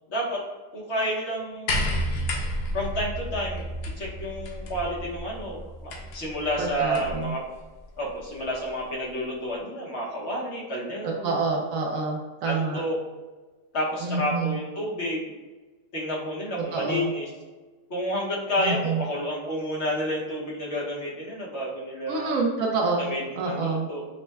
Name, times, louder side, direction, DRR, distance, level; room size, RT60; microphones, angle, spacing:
voice 1, 0.1-0.4 0.7-1.9 2.7-3.7 4.0-7.4 8.0-11.4 12.4-13.0 13.7-15.3 15.9-17.3 17.9-22.4 23.0-24.1, equal, 50° left, -4 dB, 0.9 m, -30 dB
sound 1, 1.7-7.3 8.4-8.5, equal, 80° left, 1.2 m, -31 dB
voice 2, 6.6-7.3 11.0-12.8 14.0-14.6 16.6-17.1 18.6-19.0 22.1-23.1 23.4-23.9, right 4 dB, 70° right, -1 dB, 0.8 m, -27 dB
5.2 x 2.1 x 2.2 m, 1.3 s
omnidirectional pair, 1.8 m